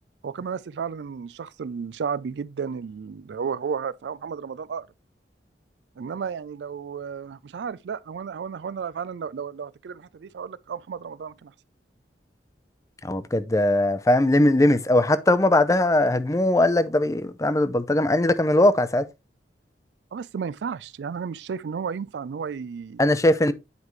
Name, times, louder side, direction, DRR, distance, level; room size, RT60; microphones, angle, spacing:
voice 1, 0.2-4.9 6.0-11.5 20.1-23.0, right 6 dB, 75° right, 0.4 m, -33 dB
voice 2, 13.0-19.1 23.0-23.5, left 1 dB, 20° left, 0.5 m, -20 dB
9.4 x 4.8 x 3.1 m
head